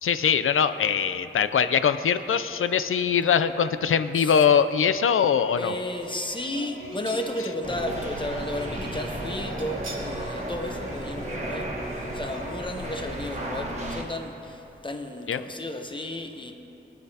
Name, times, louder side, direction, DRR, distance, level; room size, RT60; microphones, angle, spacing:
voice 1, 0.0-5.7 15.3-15.4, left 7 dB, 80° left, 12 dB, 0.5 m, -22 dB
sound 1, 4.5-5.1 5.6-5.7 6.9-7.7 8.0-8.1 9.6-10.2 10.6-10.8 11.1-11.2, right 2 dB, 70° right, 1.5 m, -44 dB
sound 2, 5.4-12.6, equal, 40° left, 3.0 m, -41 dB
voice 2, 5.6-16.5, left 1 dB, 25° left, 4 dB, 0.9 m, -33 dB
sound 3, 7.6-14.0, right 1 dB, 35° right, 1.5 m, -34 dB
20.0 x 9.5 x 2.8 m, 2.9 s
wide cardioid pair, 115°, 21 cm